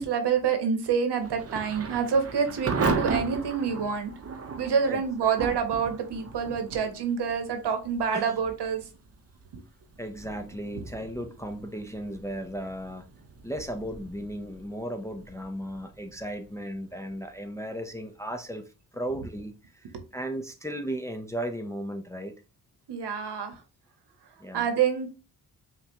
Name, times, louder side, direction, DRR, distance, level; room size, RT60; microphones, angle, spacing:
voice 1, 0.0-4.1 4.6-8.8 9.5-9.6 10.8-10.9 19.9-20.0 22.9-23.6 24.5-25.1, right 6 dB, 70° right, 1.0 m, -27 dB
Thunder / Rain, 1.2-17.9, right 4 dB, 35° right, 0.7 m, -37 dB
voice 2, 4.9-5.4 8.1-8.4 10.0-13.0 13.4-22.4 24.4-24.7, equal, 5° left, 0.5 m, -36 dB
5.4 x 2.3 x 2.7 m
cardioid pair, 75°, 42 cm